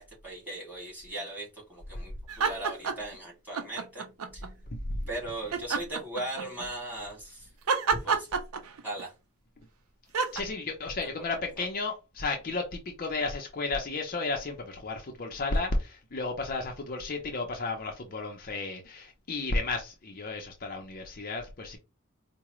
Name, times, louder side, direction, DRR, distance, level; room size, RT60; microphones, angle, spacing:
voice 1, 0.0-4.5 5.1-7.5 7.9-8.3 8.8-9.1 10.8-10.9 11.6-11.7, right 1 dB, 10° right, 2.3 m, -39 dB
sound 1, 2.3-3.1 3.5-4.5 5.5-6.7 7.7-9.0 10.1-10.4, right 5 dB, 70° right, 0.6 m, -28 dB
voice 2, 10.3-21.8, left 3 dB, 40° left, 0.6 m, -33 dB
4.7 x 2.1 x 3.0 m
head